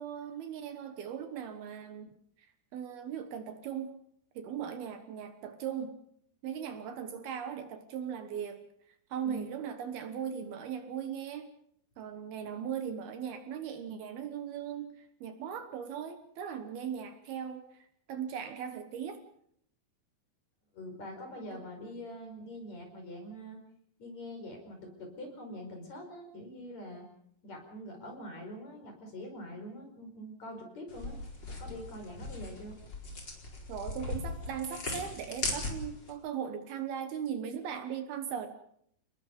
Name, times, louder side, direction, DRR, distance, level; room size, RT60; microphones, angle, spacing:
voice 1, 0.0-2.1 2.7-3.9 4.4-6.0 6.4-11.5 12.0-19.2 21.5-21.6 33.7-38.6, right 8 dB, 70° right, 8 dB, 3.0 m, -38 dB
voice 2, 20.7-23.6 24.0-27.1 27.4-31.2 31.5-32.8, equal, 40° left, 3 dB, 6.1 m, -44 dB
sound 1, 30.9-36.1, left 2 dB, 25° left, 4.7 m, -39 dB
29.5 x 20.0 x 5.4 m, 0.68 s
omnidirectional pair, 4.9 m